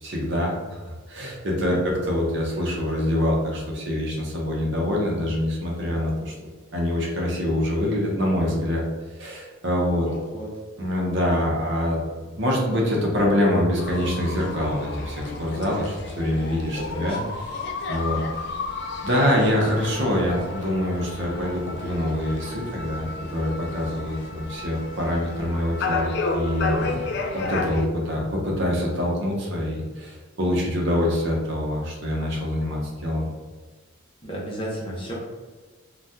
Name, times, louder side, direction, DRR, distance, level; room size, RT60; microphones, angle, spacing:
voice 1, 0.0-6.3 6.7-8.8 9.1-10.1 10.8-12.0 12.3-17.2 17.5-17.6 17.9-18.5 19.0-33.3, left 1 dB, 55° right, -1 dB, 0.7 m, -25 dB
voice 2, 10.1-10.5 16.7-17.3 34.2-35.1, equal, 25° left, -5 dB, 0.7 m, -33 dB
sound 1, 13.8-27.9, left 3 dB, 50° left, 0.3 m, -32 dB
2.7 x 2.2 x 3.4 m, 1.3 s
head